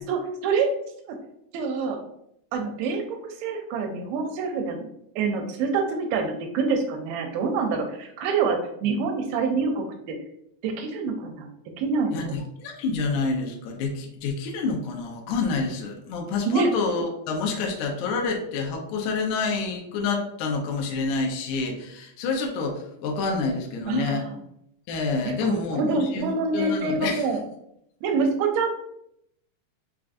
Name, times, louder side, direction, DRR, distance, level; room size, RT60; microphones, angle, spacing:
voice 1, 0.1-0.7 1.1-1.2 1.5-2.0 2.5-4.9 5.2-10.2 10.6-11.5 11.8-12.4 16.5-16.7 23.9-24.3 25.2-27.4 28.0-28.8, right 4 dB, 85° right, 3 dB, 2.3 m, -26 dB
voice 2, 12.1-24.2 24.9-27.3, left 4 dB, 80° left, 1 dB, 1.8 m, -28 dB
5.7 x 2.5 x 2.4 m, 0.75 s
omnidirectional pair, 4.3 m